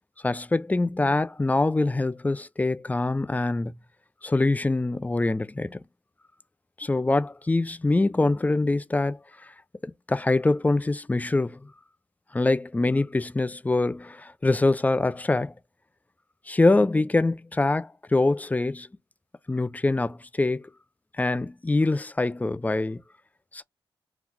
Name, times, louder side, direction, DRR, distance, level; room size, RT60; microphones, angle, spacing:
voice 1, 0.2-3.7 4.2-5.8 6.8-9.2 9.8-11.6 12.3-15.5 16.5-18.9 19.5-20.7 21.2-23.0 23.5-23.6, left 2 dB, 15° left, 0.5 m, -24 dB
3.8 x 2.4 x 2.9 m
cardioid pair, 65°, 10 cm